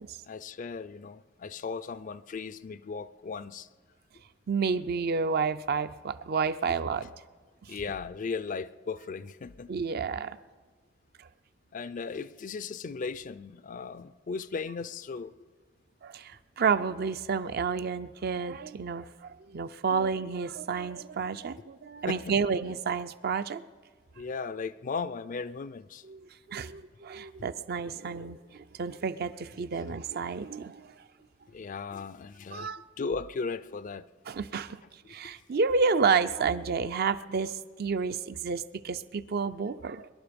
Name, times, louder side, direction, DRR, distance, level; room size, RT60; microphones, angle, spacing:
voice 1, 0.3-3.7 6.7-6.8 7.7-9.7 11.7-15.3 22.1-22.3 24.2-26.0 31.5-32.7 33.0-34.0 35.1-35.2, left 5 dB, 45° left, 0.4 m, -36 dB
voice 2, 4.5-7.1 7.7-7.8 9.7-10.4 16.0-19.1 19.5-23.6 26.0-30.9 32.5-32.8 34.3-34.8 35.1-40.1, right 5 dB, 55° right, 0.5 m, -30 dB
22.5 x 11.5 x 5.2 m
head